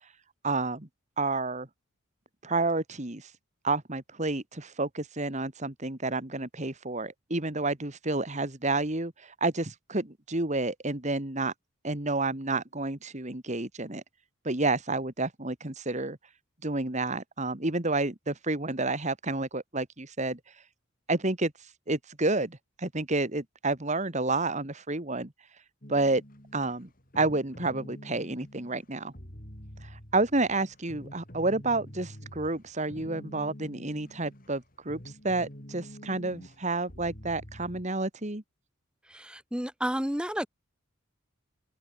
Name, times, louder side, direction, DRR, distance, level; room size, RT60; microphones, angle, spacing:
voice 1, 0.4-0.9 1.2-1.7 2.4-3.3 3.6-11.5 11.8-14.0 14.4-16.2 16.6-20.4 21.1-21.5 21.9-25.3 25.9-26.2 26.5-26.9 27.2-29.1 30.1-35.0 35.2-38.4, right 2 dB, 35° right, 2.1 m, -30 dB
sound 1, 25.8-37.9, equal, 40° left, 7.3 m, -47 dB
voice 2, 39.1-40.5, equal, 5° right, 1.0 m, -31 dB
open air
head